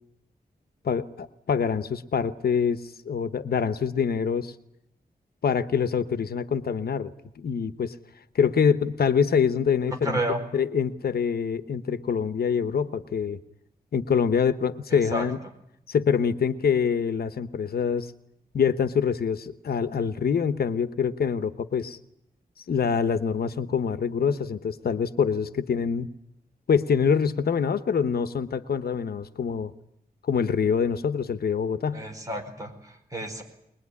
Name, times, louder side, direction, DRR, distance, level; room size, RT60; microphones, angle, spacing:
voice 1, 0.8-4.5 5.4-7.9 8.3-10.2 10.5-13.4 13.9-15.4 15.9-18.1 18.5-22.0 22.7-26.1 26.7-29.7 30.2-32.0, left 6 dB, 75° left, 12 dB, 1.1 m, -25 dB
voice 2, 10.0-10.4 14.9-15.2 31.9-33.4, right 1 dB, 20° right, 3 dB, 4.9 m, -31 dB
22.5 x 21.5 x 9.8 m, 0.79 s
wide cardioid pair, 165°, 16 cm